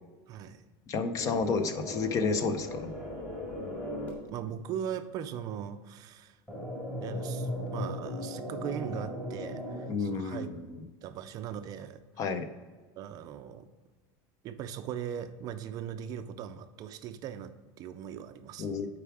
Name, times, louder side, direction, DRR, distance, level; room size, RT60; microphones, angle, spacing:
voice 1, 0.3-0.6 4.3-6.4 7.0-10.5 11.0-12.0 13.0-13.7 14.4-17.5 17.8-18.8, right 9 dB, 40° right, 10 dB, 0.4 m, -39 dB
voice 2, 0.9-2.9 9.9-10.8 12.2-12.5 18.6-18.9, left 4 dB, 35° left, 10 dB, 0.5 m, -31 dB
sound 1, 1.1-4.1 6.5-9.9, equal, 10° left, 2.0 m, -37 dB
6.8 x 4.8 x 4.8 m, 1.4 s
cardioid pair, 165°, 10 cm